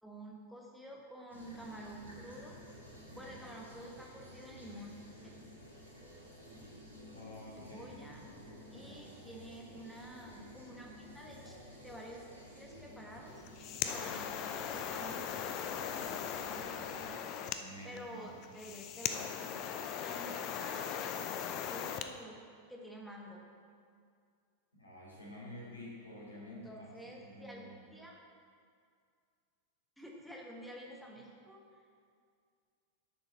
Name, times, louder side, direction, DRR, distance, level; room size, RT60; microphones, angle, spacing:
voice 1, 0.0-2.6 3.1-5.3 7.6-8.2 8.7-11.5 11.8-12.3 12.5-13.4 13.8-17.2 17.8-23.4 26.5-28.2 30.0-31.6, right 1 dB, ahead, -2 dB, 1.2 m, -50 dB
sound 1, 1.3-17.1, equal, 80° right, 2.2 m, -52 dB
voice 2, 3.1-3.5 7.1-8.1 8.7-9.1 17.6-18.6 24.7-27.7, left 1 dB, 80° left, -6 dB, 2.6 m, -50 dB
sound 2, 13.3-22.1, left 8 dB, 40° left, 0.5 m, -39 dB
10.5 x 6.9 x 4.2 m, 2.2 s
figure-of-eight pair, 90°, 0 cm